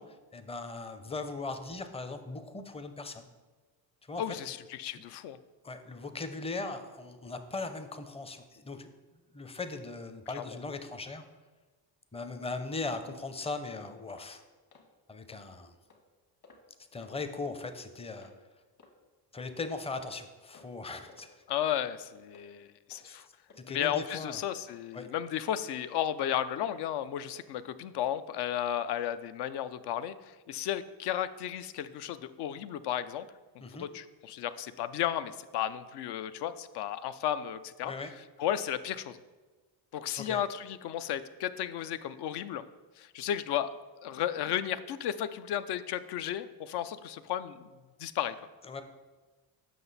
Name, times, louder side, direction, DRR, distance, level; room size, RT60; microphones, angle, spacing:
voice 1, 0.0-3.3 4.1-4.6 4.9-5.0 5.6-8.9 9.3-11.2 12.1-14.4 15.1-15.7 16.9-18.3 19.3-21.3 23.0-23.2 23.6-24.4 24.9-25.1 33.6-33.9 37.8-38.1 40.2-40.4 48.6-48.8, left 3 dB, 15° left, 8 dB, 0.5 m, -39 dB
voice 2, 4.2-5.4 10.3-10.4 21.5-23.3 23.7-33.3 33.6-37.9 38.4-39.2 39.9-42.6 43.0-43.7 44.0-47.7 48.0-48.3, left 10 dB, 65° left, 13 dB, 0.5 m, -34 dB
sound 1, 14.1-14.3 14.7-14.9 15.3-15.4 15.9-16.0 16.4-16.7 17.0-17.2 17.6-17.7 18.2-18.4 18.8-18.9 19.4-19.5 20.0-20.2 20.5-20.8 21.1-21.3 21.7-21.8 22.3-22.5 22.9-23.1 23.5-23.6 24.1-24.2 24.7-24.8 25.3-25.4 25.8-25.9, left 4 dB, 45° left, 1.4 m, -57 dB
7.6 x 5.8 x 4.0 m, 1.3 s
cardioid pair, 100°, 43 cm